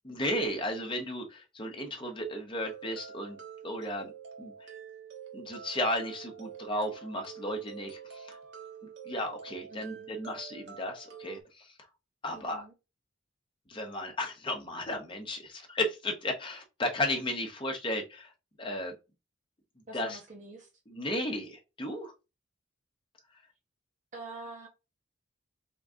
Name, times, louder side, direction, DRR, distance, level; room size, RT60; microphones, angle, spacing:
voice 1, 0.0-3.4 3.6-4.1 4.4-4.7 5.3-8.4 9.0-11.7 12.2-12.7 13.7-18.3 18.6-18.9 19.9-20.2 20.9-22.1, left 1 dB, 25° left, 0.9 m, -34 dB
sound 1, 2.6-11.4, right 7 dB, 60° right, 1.2 m, -47 dB
voice 2, 9.7-10.1 12.3-12.7 19.9-20.7 24.1-24.7, right 3 dB, 40° right, 0.8 m, -46 dB
3.8 x 3.8 x 3.6 m
head